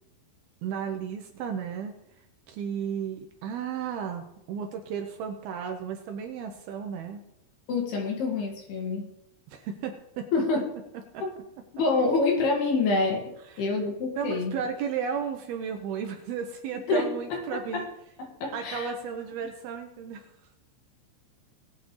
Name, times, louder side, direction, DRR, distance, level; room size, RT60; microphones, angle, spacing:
voice 1, 0.6-1.9 2.5-7.2 9.5-10.3 11.1-11.4 13.5-13.7 14.2-17.9 18.5-20.3, right 7 dB, 80° right, 4 dB, 2.3 m, -34 dB
voice 2, 7.7-9.1 10.3-10.7 11.2-11.3 11.7-14.5 16.9-17.8 18.2-18.9, left 3 dB, 60° left, 0 dB, 3.7 m, -27 dB
19.5 x 8.2 x 3.2 m, 0.83 s
omnidirectional pair, 5.5 m